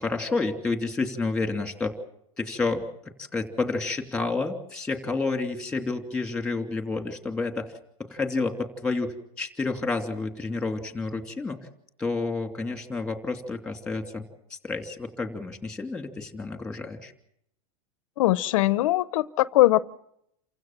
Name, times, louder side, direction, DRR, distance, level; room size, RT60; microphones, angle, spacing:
voice 1, 0.0-1.9 2.4-7.7 8.0-11.7 12.0-14.2 14.5-17.1, left 3 dB, 5° left, 5 dB, 2.8 m, -30 dB
voice 2, 18.2-19.8, left 16 dB, 70° left, 16 dB, 0.8 m, -21 dB
28.5 x 16.0 x 7.4 m, 0.74 s
supercardioid pair, 150°, 18 cm